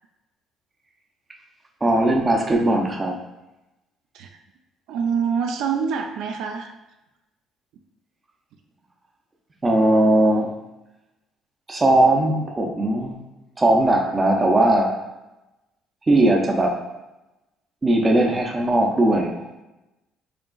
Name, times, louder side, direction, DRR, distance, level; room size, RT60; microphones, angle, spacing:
voice 1, 1.8-3.2 9.6-10.5 11.7-13.2 13.6-14.9 16.1-16.8 17.8-19.5, right 1 dB, 15° right, 1 dB, 0.5 m, -19 dB
voice 2, 4.9-6.7, right 6 dB, 70° right, 5 dB, 0.4 m, -25 dB
4.9 x 2.9 x 2.3 m, 0.98 s
cardioid pair, 155°, 0 cm